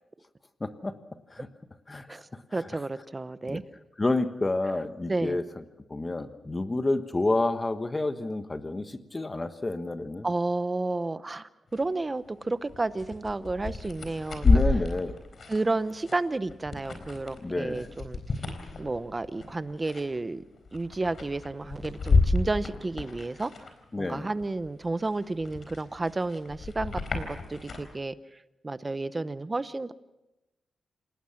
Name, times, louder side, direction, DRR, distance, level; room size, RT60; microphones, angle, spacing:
voice 1, 0.6-1.0 1.3-1.5 1.9-2.6 3.5-3.6 4.0-5.4 5.9-10.3 14.4-15.2 17.4-17.9 23.9-24.3, left 2 dB, 20° left, 10 dB, 1.3 m, -29 dB
voice 2, 2.1-3.6 5.1-5.4 10.2-14.5 15.5-18.2 18.8-20.4 20.7-23.5 24.0-28.1 28.6-29.9, right 2 dB, 25° right, 14 dB, 0.7 m, -31 dB
sound 1, 11.7-11.9 12.3-24.0 24.4-27.9, left 3 dB, 50° left, 4.0 m, -30 dB
28.0 x 18.5 x 5.9 m, 0.96 s
wide cardioid pair, 120°, 0 cm